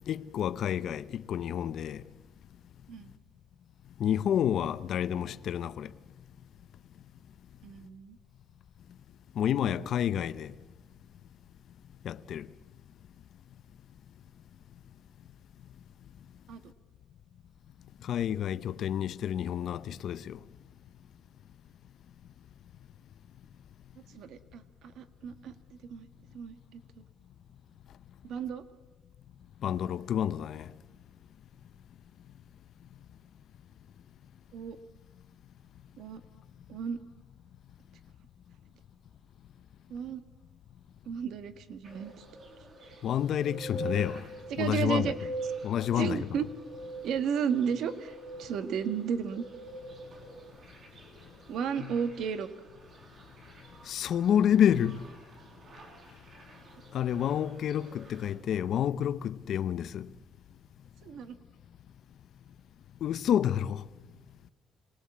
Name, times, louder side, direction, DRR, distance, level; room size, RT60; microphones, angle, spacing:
voice 1, 0.0-2.0 4.0-5.9 9.4-10.5 12.0-12.5 18.0-20.4 29.6-30.7 43.0-44.2 44.6-45.1 45.6-46.4 51.8-51.9 53.9-55.0 56.9-60.1 63.0-63.8, left 9 dB, 55° left, 0.7 m, -29 dB
voice 2, 7.6-8.2 16.5-16.6 24.1-25.5 25.9-26.1 26.3-26.8 28.2-28.6 34.5-34.8 36.0-36.2 36.7-37.0 39.9-40.2 41.0-42.2 44.5-45.1 46.0-46.4 47.0-49.4 51.5-52.5 61.0-61.4, right 7 dB, 60° right, 1.6 m, -33 dB
sound 1, 41.8-58.3, right 2 dB, 40° right, 7.1 m, -44 dB
26.5 x 20.0 x 8.5 m
cardioid pair, 160°, 0 cm